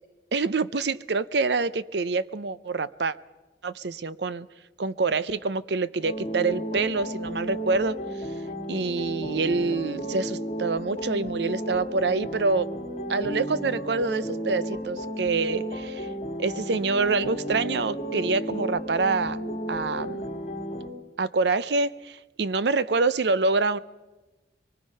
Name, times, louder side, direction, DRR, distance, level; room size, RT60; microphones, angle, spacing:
voice 1, 0.3-3.2 3.6-4.5 4.8-8.0 8.7-12.7 13.1-16.1 16.4-19.4 19.7-20.3 21.2-23.8, right 3 dB, 70° right, 16 dB, 0.7 m, -26 dB
sound 1, 6.0-20.9, equal, 40° left, 3.0 m, -33 dB
23.5 x 22.5 x 5.5 m, 1.2 s
head